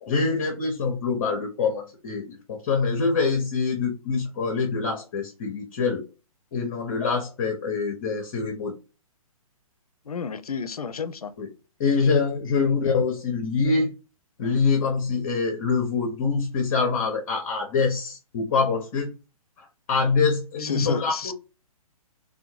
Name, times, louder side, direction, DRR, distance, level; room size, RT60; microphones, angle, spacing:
voice 1, 0.0-6.0 6.5-8.7 11.4-11.5 11.8-13.9 14.4-19.1 19.9-21.3, left 4 dB, 30° left, 0.6 m, -25 dB
voice 2, 10.1-11.3 12.6-12.7 20.6-21.3, left 5 dB, 75° left, 0.4 m, -31 dB
3.4 x 2.2 x 2.9 m
figure-of-eight pair, 125°, 19 cm